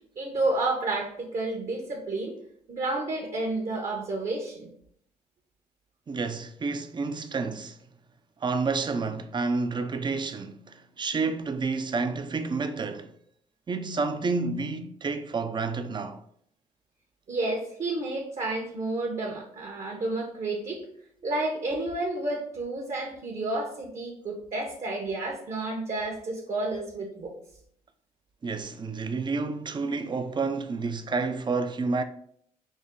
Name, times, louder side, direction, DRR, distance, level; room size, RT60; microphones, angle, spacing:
voice 1, 0.2-2.4 2.7-4.7 17.3-20.9 21.2-27.3, right 2 dB, 50° right, 1.0 m, -30 dB
voice 2, 6.1-7.8 8.4-13.1 13.7-16.2 28.4-32.0, right 4 dB, 30° right, 0.5 m, -30 dB
5.3 x 2.1 x 3.7 m
supercardioid pair, 65°, 15 cm